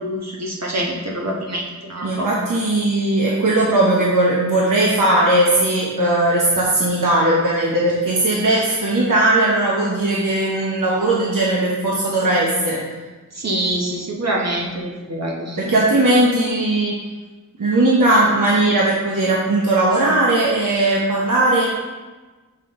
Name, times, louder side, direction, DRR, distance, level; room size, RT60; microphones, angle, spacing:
voice 1, 0.0-2.3 13.4-15.7, right 1 dB, 55° right, -1 dB, 1.3 m, -25 dB
voice 2, 2.0-12.8 15.6-17.0 17.6-21.7, right 2 dB, 75° right, -5 dB, 1.1 m, -18 dB
6.4 x 5.8 x 3.8 m, 1.3 s
wide cardioid pair, 80°, 32 cm